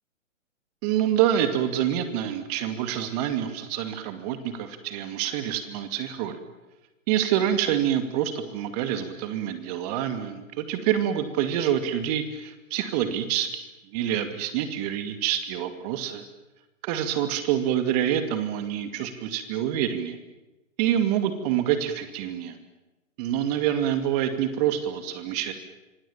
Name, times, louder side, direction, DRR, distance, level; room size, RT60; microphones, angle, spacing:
voice 1, 0.8-6.4 7.1-13.6 13.9-16.2 16.8-20.2 20.8-22.6 23.2-25.5, right 10 dB, 30° right, 9 dB, 2.3 m, -26 dB
26.0 x 25.5 x 7.2 m, 1.0 s
hypercardioid pair, 135°, 39 cm